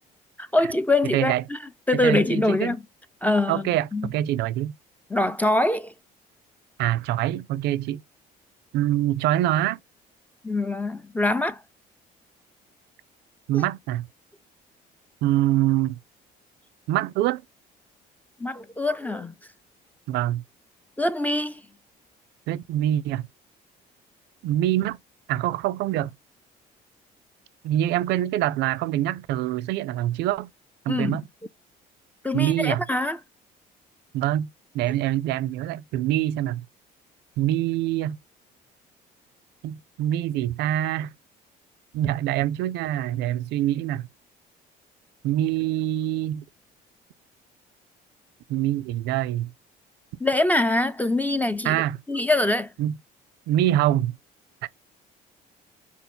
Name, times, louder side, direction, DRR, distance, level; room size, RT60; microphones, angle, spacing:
voice 1, 0.4-1.6 1.9-2.8 3.2-4.1 5.1-5.9 10.4-11.6 13.5-13.7 18.4-19.3 21.0-21.6 30.9-31.2 32.2-33.2 50.2-51.8 52.1-52.7, left 2 dB, 10° left, 0.3 m, -24 dB
voice 2, 1.1-1.4 1.9-2.8 3.5-4.7 6.8-8.0 8.7-9.8 13.5-14.0 15.2-16.0 16.9-17.4 20.1-20.4 22.5-23.3 24.4-25.0 25.3-26.1 27.6-30.5 30.9-31.2 32.3-32.8 34.1-34.5 34.7-36.6 37.4-38.2 39.6-41.1 41.9-44.0 45.2-46.4 48.5-49.5 51.6-52.0 52.8-53.0 53.5-54.1 54.6-54.7, right 13 dB, 85° right, 0.5 m, -24 dB
4.1 x 2.8 x 4.3 m
cardioid pair, 110°, 17 cm